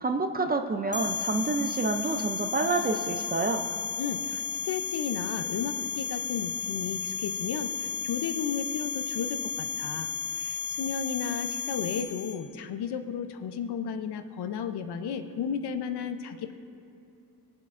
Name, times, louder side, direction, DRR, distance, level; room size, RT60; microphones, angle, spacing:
voice 1, 0.0-3.6, right 3 dB, 25° right, 6 dB, 0.4 m, -28 dB
sound 1, 0.9-12.3, left 7 dB, 30° left, 1.0 m, -33 dB
voice 2, 4.0-16.5, left 7 dB, 85° left, 8 dB, 0.7 m, -34 dB
20.5 x 7.6 x 2.5 m, 2.7 s
wide cardioid pair, 160°, 38 cm